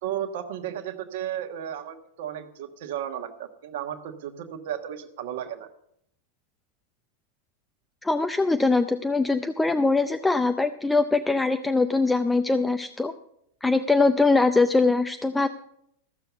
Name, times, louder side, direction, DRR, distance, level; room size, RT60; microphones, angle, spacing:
voice 1, 0.0-5.7, right 10 dB, 55° right, 7 dB, 1.2 m, -34 dB
voice 2, 8.0-13.1 13.6-15.5, left 3 dB, 10° left, 9 dB, 0.5 m, -22 dB
14.5 x 6.9 x 6.9 m, 0.75 s
figure-of-eight pair, 90°, 0 cm